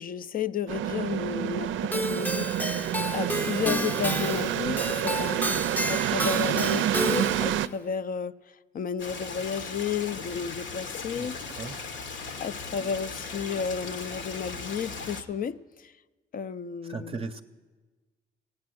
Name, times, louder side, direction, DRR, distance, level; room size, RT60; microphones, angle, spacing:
voice 1, 0.0-2.8 3.1-8.3 8.7-11.4 12.4-15.9 16.3-17.2, left 7 dB, 45° left, 0.4 m, -32 dB
sound 1, 0.7-7.7, right 11 dB, 75° right, 0.4 m, -28 dB
Keyboard (musical), 1.9-7.6, equal, 10° left, 0.7 m, -31 dB
Stream, 9.0-15.2, left 4 dB, 70° left, 1.1 m, -38 dB
voice 2, 11.1-11.9 16.8-17.4, right 4 dB, 30° right, 0.6 m, -38 dB
15.5 x 9.7 x 7.7 m
cardioid pair, 90°, 20 cm